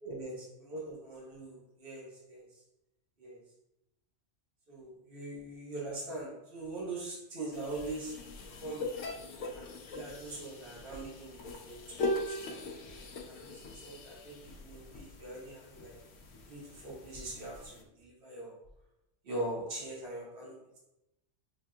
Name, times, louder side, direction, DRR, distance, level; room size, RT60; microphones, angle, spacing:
voice 1, 0.0-2.5 3.2-3.4 4.7-8.1 8.6-9.0 9.5-12.7 13.3-16.0 16.5-18.5 19.2-20.8, right 2 dB, 50° right, -5 dB, 1.4 m, -42 dB
sound 1, 7.5-17.8, left 2 dB, 85° left, 1.0 m, -41 dB
6.7 x 2.7 x 2.2 m, 0.91 s
omnidirectional pair, 1.2 m